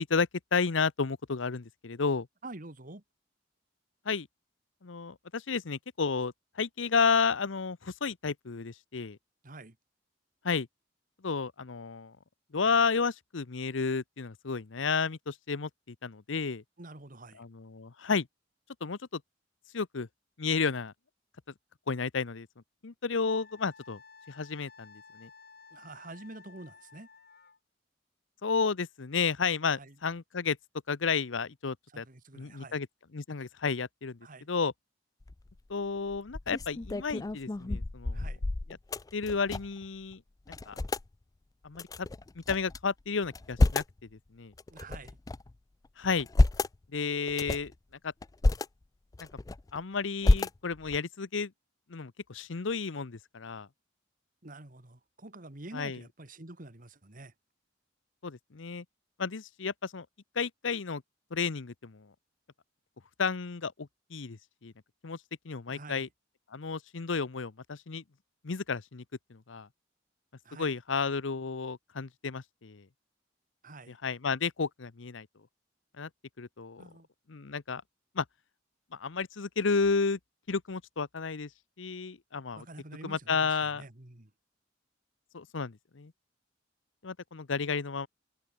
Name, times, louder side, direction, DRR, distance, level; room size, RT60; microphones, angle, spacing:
voice 1, 0.0-2.3 4.0-4.3 4.8-9.2 10.4-10.7 11.2-12.1 12.5-16.6 17.4-18.3 18.8-19.2 19.7-20.1 20.4-20.9 21.9-22.5 22.8-24.0 24.3-25.3 28.4-30.6 30.9-32.0 32.3-32.9 33.1-34.2 34.5-34.7 35.7-38.2 39.1-40.2 40.5-40.8 41.6-42.1 42.4-43.8 44.3-44.5 46.0-46.3 46.9-47.7 48.0-48.1 49.2-49.3 49.7-51.5 51.9-53.7 55.7-56.0 58.2-58.8 59.2-60.1 60.3-61.0 61.3-62.1 63.2-64.7 65.0-65.2 65.4-66.1 66.5-68.0 68.4-69.0 69.3-69.7 70.6-72.9 73.9-75.3 76.0-76.1 76.4-76.8 77.3-77.8 78.1-78.2 78.9-80.2 80.5-81.5 81.8-82.7 83.0-83.8 85.3-86.1 87.0-88.1, left 5 dB, 85° left, 0.8 m, -32 dB
voice 2, 2.4-3.0 9.4-9.8 16.8-17.4 25.7-27.1 29.8-30.0 31.9-32.8 34.2-34.5 38.1-38.4 44.7-45.2 54.4-57.3 65.7-66.1 70.4-70.7 73.6-74.0 76.8-77.1 82.5-84.3, right 2 dB, 45° right, 2.1 m, -47 dB
Wind instrument woodwind instrument, 23.3-27.6, left 5 dB, 55° left, 7.6 m, -55 dB
sound 1, 35.2-35.6 36.1-39.9 40.1-40.2 40.5-41.1 41.8-42.8 43.2-44.0 44.6-45.5 46.0-46.8 47.3-47.7 48.2-48.7 49.1-49.8 50.2-51.0, left 2 dB, 20° left, 0.3 m, -29 dB
head